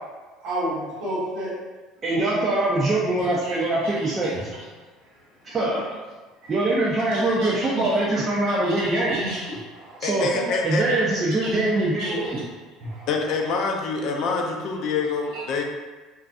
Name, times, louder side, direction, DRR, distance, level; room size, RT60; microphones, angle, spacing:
voice 1, 0.4-1.5 3.2-4.1 6.4-6.5 7.1-8.1 8.6-10.1 11.4-11.7 12.0-12.4 12.8-13.1 15.3-15.4, right 1 dB, 70° right, -8 dB, 1.2 m, -32 dB
voice 2, 2.0-4.3 5.4-5.8 6.5-9.2 10.0-12.4, right 2 dB, 35° right, -6 dB, 0.5 m, -23 dB
voice 3, 10.0-10.9 13.1-15.6, left 4 dB, 65° left, 1 dB, 0.4 m, -25 dB
2.5 x 2.1 x 2.4 m, 1.3 s
hypercardioid pair, 80°, 0 cm